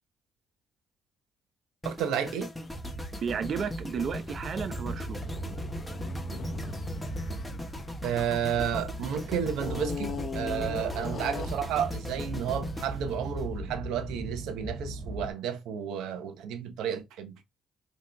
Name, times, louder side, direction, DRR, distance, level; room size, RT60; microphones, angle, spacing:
sound 1, 1.8-14.0 14.3-14.6, left 1 dB, 10° left, 1.1 m, -41 dB
voice 1, 1.8-2.5 8.0-17.4, right 8 dB, 85° right, 0.8 m, -32 dB
sound 2, 2.7-15.3, right 1 dB, 15° right, 1.9 m, -39 dB
voice 2, 3.2-5.2, right 6 dB, 55° right, 0.6 m, -33 dB
sound 3, 4.1-8.9 9.6-11.8, left 3 dB, 55° left, 0.8 m, -39 dB
5.3 x 3.0 x 2.2 m
cardioid pair, 85°, 0 cm